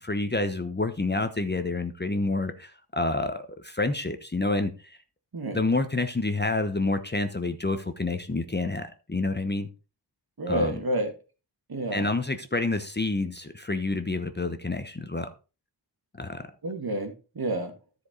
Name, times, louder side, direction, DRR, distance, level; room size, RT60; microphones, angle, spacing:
voice 1, 0.0-5.0 5.5-9.7 10.5-10.8 11.9-15.3 16.2-16.4, left 2 dB, 25° left, 0.9 m, -28 dB
voice 2, 10.4-11.1 11.7-12.1 16.6-17.7, right 1 dB, 55° right, 2.1 m, -29 dB
13.0 x 5.0 x 4.0 m
wide cardioid pair, 70°, 44 cm